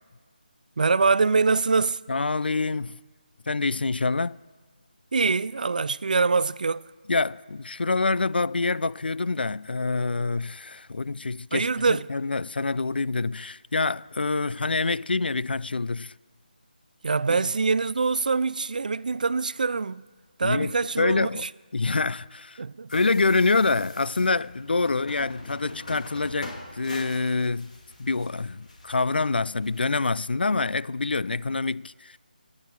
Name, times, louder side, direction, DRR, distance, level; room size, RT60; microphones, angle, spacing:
voice 1, 0.8-2.0 5.1-6.8 11.5-12.1 17.0-20.0 20.4-21.5 22.6-22.9, right 4 dB, 55° right, 0.3 m, -24 dB
voice 2, 2.1-3.0 3.5-4.4 7.1-16.1 17.3-17.4 20.4-21.5 21.7-22.6 22.9-27.7 28.0-32.2, left 3 dB, 90° left, 0.4 m, -26 dB
sound 1, 22.9-30.0, left 2 dB, 50° left, 2.6 m, -44 dB
20.5 x 9.8 x 4.6 m
figure-of-eight pair, 170°, 5 cm